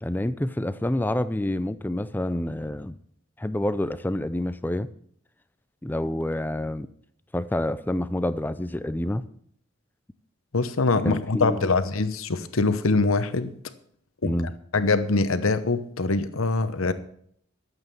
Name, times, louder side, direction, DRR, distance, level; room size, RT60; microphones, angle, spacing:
voice 1, 0.0-3.0 3.4-4.9 5.8-6.9 7.3-9.2 11.0-11.7 14.2-14.5, left 1 dB, 10° left, 15 dB, 0.4 m, -28 dB
voice 2, 10.5-13.5 14.2-14.3 14.7-16.9, left 3 dB, 75° left, 12 dB, 0.9 m, -23 dB
12.5 x 7.9 x 7.0 m, 0.65 s
head